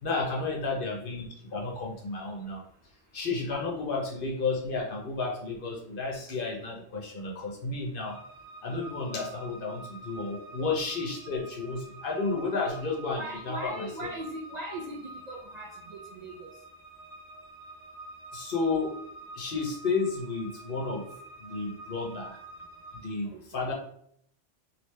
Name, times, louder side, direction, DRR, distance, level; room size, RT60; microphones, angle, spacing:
voice 1, 0.0-2.6 3.1-8.2 8.6-13.9 18.3-18.9 19.3-21.0 21.4-22.4 22.9-23.7, left 3 dB, 55° left, -1 dB, 0.9 m, -32 dB
sound 1, 8.0-23.1, right 2 dB, 90° right, 1.1 m, -47 dB
voice 2, 13.1-16.5 23.2-23.7, right 1 dB, 55° right, -3 dB, 0.5 m, -40 dB
3.1 x 2.8 x 3.2 m, 0.67 s
omnidirectional pair, 1.2 m